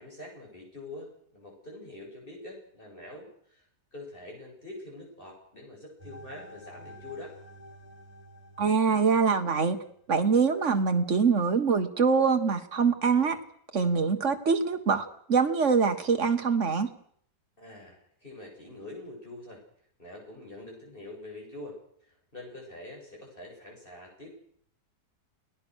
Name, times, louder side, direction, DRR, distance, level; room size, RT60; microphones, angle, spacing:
voice 1, 0.0-3.7 3.9-7.3 17.6-19.6 20.0-21.8 22.0-24.3, left 2 dB, 30° left, 0 dB, 8.2 m, -45 dB
sound 1, 6.0-10.0, equal, 20° right, 7.2 m, -50 dB
voice 2, 8.6-9.8 10.1-13.4 13.7-16.9, right 5 dB, 45° right, 7 dB, 2.0 m, -24 dB
29.0 x 18.5 x 6.5 m, 0.65 s
omnidirectional pair, 1.8 m